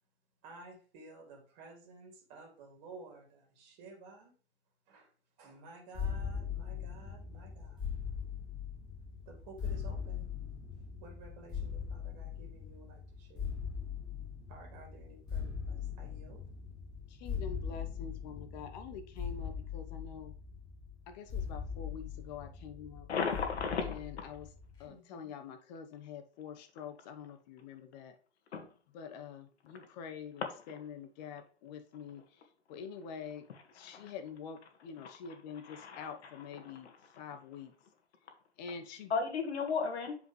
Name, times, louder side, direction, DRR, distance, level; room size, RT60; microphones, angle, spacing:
voice 1, 0.4-4.3 4.9-5.1 5.4-7.8 9.3-10.3 11.0-13.6 14.5-16.4 24.8-25.3, right 3 dB, 40° right, 2.6 m, -53 dB
sound 1, 5.9-24.8, left 7 dB, 15° left, 2.7 m, -41 dB
voice 2, 17.2-20.3 21.1-23.1 23.8-24.5 24.8-28.1 28.9-32.2 32.7-33.4 33.7-36.9 37.2-37.7 38.6-39.1, left 6 dB, 40° left, 1.1 m, -46 dB
voice 3, 23.1-24.0 28.5-28.7 33.8-33.9 35.7-36.1 36.6-36.7 39.1-40.2, left 5 dB, 70° left, 1.8 m, -34 dB
7.6 x 5.1 x 3.2 m
hypercardioid pair, 135°, 34 cm